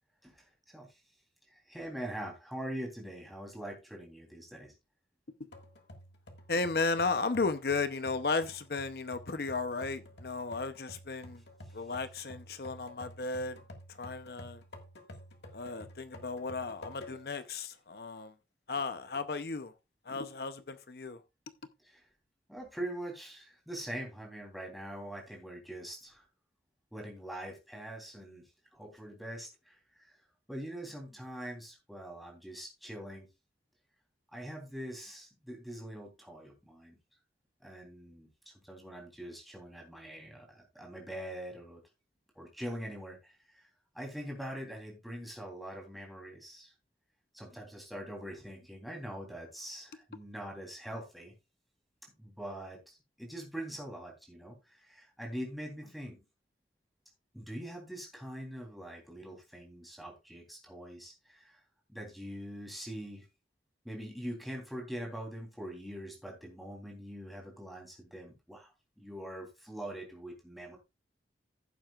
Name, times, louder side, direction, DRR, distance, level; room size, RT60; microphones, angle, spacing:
voice 1, 0.2-1.0 1.5-4.7 21.8-22.0 22.5-26.3 26.9-33.3 34.3-37.0 37.6-41.8 42.3-43.7 43.9-46.7 47.3-51.3 52.2-56.2 57.3-61.6 61.9-63.2 63.8-70.8, right 1 dB, ahead, 3.3 m, -43 dB
sound 1, 5.5-17.4 17.9-18.0 18.8-19.3, left 1 dB, 80° left, 1.8 m, -51 dB
voice 2, 6.5-11.4 11.7-13.6 14.0-14.6 15.5-18.3 18.7-19.7 20.1-21.2, left 3 dB, 60° left, 0.7 m, -34 dB
15.0 x 7.5 x 2.4 m
head